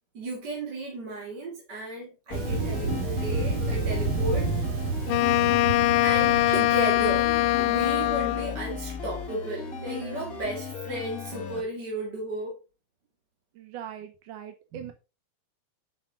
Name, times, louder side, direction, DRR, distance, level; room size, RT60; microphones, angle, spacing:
voice 1, 0.1-4.5 6.0-7.3 7.6-12.6 14.7-14.9, right 1 dB, 35° right, 2.3 m, -34 dB
sound 1, 2.3-11.6, left 5 dB, 30° left, 2.0 m, -37 dB
Thunder, 2.3-8.2, right 3 dB, 55° right, 3.0 m, -30 dB
Wind instrument woodwind instrument, 5.1-8.6, left 17 dB, 90° left, 2.3 m, -23 dB
voice 2, 13.6-14.9, right 10 dB, 85° right, 2.5 m, -41 dB
11.0 x 5.8 x 3.9 m
omnidirectional pair, 3.6 m